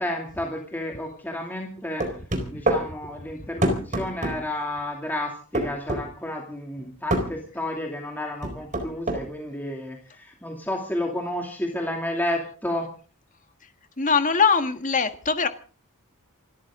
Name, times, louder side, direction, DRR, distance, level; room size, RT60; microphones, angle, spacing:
voice 1, 0.0-2.0 2.5-12.9, left 1 dB, 10° left, 2.6 m, -31 dB
sound 1, 2.0-2.8 3.6-4.4 5.5-6.0 7.1-7.3 8.4-9.2, right 1 dB, 35° right, 4.3 m, -24 dB
voice 2, 14.0-15.5, left 5 dB, 35° left, 1.6 m, -21 dB
28.0 x 13.5 x 3.7 m
head